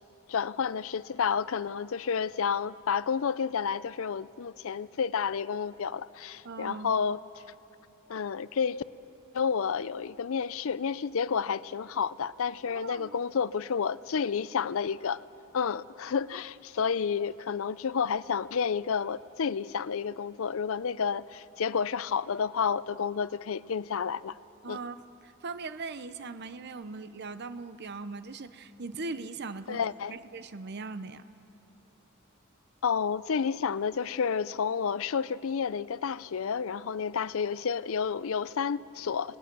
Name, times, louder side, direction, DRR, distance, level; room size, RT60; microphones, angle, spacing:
voice 1, 0.3-7.2 8.1-8.8 9.3-15.2 15.5-24.4 24.7-24.8 29.7-30.1 32.8-39.4, left 6 dB, 65° left, 0.5 m, -30 dB
voice 2, 6.4-6.9 12.7-13.2 24.6-31.2, right 3 dB, 50° right, 0.7 m, -40 dB
29.5 x 19.0 x 6.1 m
head